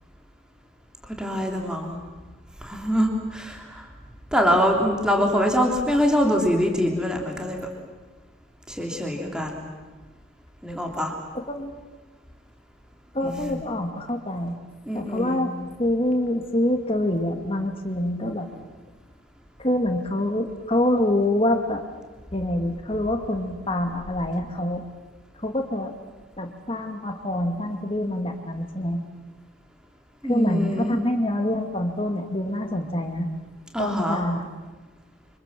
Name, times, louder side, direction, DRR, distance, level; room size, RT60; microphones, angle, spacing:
voice 1, 1.2-2.0 2.6-3.9 4.3-7.6 8.7-9.7 10.6-11.1 13.2-13.6 14.9-15.4 30.2-31.0 33.7-34.2, equal, 5° right, 1 dB, 3.2 m, -24 dB
voice 2, 11.3-11.7 13.1-14.5 14.9-15.5 15.8-18.5 19.6-21.8 22.3-24.8 25.4-25.9 26.4-29.0 30.3-33.3 33.8-34.5, left 1 dB, 30° left, 5 dB, 2.2 m, -25 dB
29.5 x 25.5 x 7.6 m, 1.2 s
head